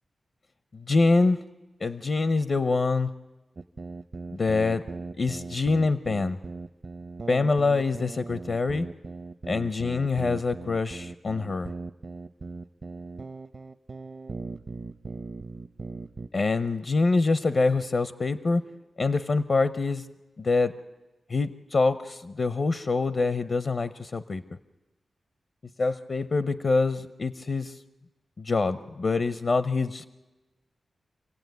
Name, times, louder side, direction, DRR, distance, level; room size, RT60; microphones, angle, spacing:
voice 1, 0.7-1.4 1.8-3.1 4.3-4.8 5.2-6.4 7.3-8.9 9.5-11.7 16.3-18.6 19.0-20.1 20.4-20.8 21.3-24.4 25.8-27.7 28.4-30.0, left 3 dB, 55° left, 13 dB, 0.7 m, -25 dB
sound 1, 3.6-16.3, right 3 dB, 50° right, 0.8 m, -39 dB
26.5 x 16.5 x 9.4 m, 1.2 s
wide cardioid pair, 75°, 0 cm